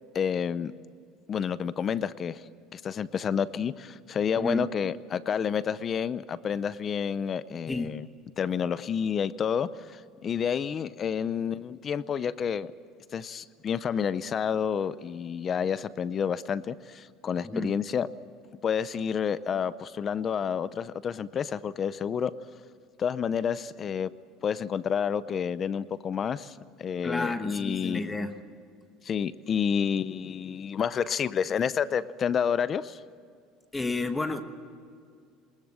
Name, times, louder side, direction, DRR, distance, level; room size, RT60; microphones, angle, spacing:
voice 1, 0.1-0.7 1.3-2.4 2.7-8.1 8.4-12.7 13.1-18.1 18.6-22.3 23.0-24.1 24.4-28.1 29.0-33.0, left 7 dB, 30° left, 16 dB, 0.6 m, -29 dB
voice 2, 4.4-4.7 7.7-8.0 17.4-17.7 27.0-28.4 33.7-34.4, left 2 dB, 10° left, 8 dB, 1.1 m, -31 dB
23.0 x 20.5 x 7.6 m, 2.3 s
cardioid pair, 150°, 0 cm